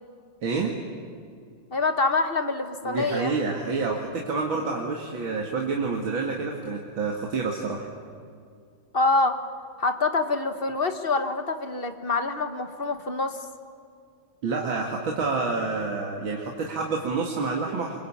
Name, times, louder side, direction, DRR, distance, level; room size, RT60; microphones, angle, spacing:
voice 1, 0.4-0.8 2.8-7.9 14.4-18.0, right 4 dB, 70° right, -1 dB, 2.8 m, -28 dB
voice 2, 1.7-3.3 8.9-9.4 9.8-13.4, left 3 dB, 30° left, 7 dB, 1.4 m, -25 dB
26.0 x 23.0 x 8.7 m, 2.3 s
omnidirectional pair, 2.2 m